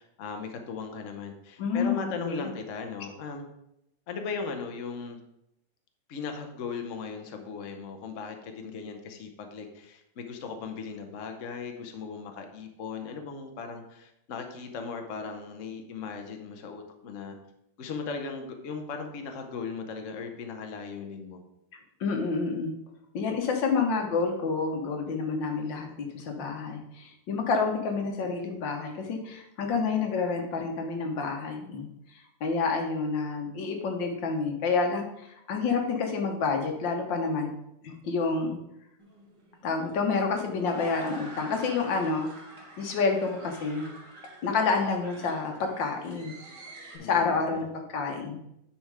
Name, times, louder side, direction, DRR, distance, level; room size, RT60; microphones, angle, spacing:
voice 1, 0.0-3.5 4.1-5.2 6.1-17.4 17.8-21.4 47.0-47.6, left 5 dB, 50° left, 4 dB, 1.1 m, -38 dB
voice 2, 1.6-2.5 22.0-22.7 23.1-31.9 32.4-37.5 37.8-38.6 39.6-42.3 42.8-43.9 44.4-46.3 46.9-48.4, left 4 dB, 80° left, 4 dB, 1.8 m, -29 dB
sound 1, 39.0-47.0, right 1 dB, 45° right, 2.2 m, -47 dB
9.3 x 4.3 x 4.8 m, 0.82 s
omnidirectional pair, 2.0 m